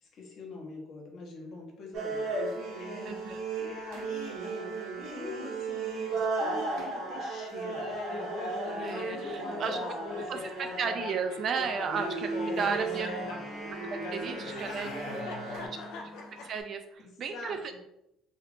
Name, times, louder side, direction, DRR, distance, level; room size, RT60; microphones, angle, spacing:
voice 1, 0.0-3.2 3.6-4.7 5.1-7.9 9.1-10.2 12.5-13.4 14.3-16.1 17.0-17.8, left 3 dB, 50° left, -1 dB, 1.0 m, -45 dB
sound 1, 1.9-15.7, right 3 dB, 85° right, 1.2 m, -36 dB
voice 2, 3.1-3.4 8.7-9.8 10.3-13.1 14.1-14.9 16.4-17.6, right 6 dB, 45° right, 6 dB, 0.3 m, -34 dB
Laughter, 7.6-13.6 14.0-16.6, left 3 dB, 75° left, 0.5 m, -40 dB
Wind instrument woodwind instrument, 12.2-16.5, equal, 20° left, 0.5 m, -45 dB
3.1 x 2.4 x 3.4 m, 0.82 s
cardioid pair, 135°, 0 cm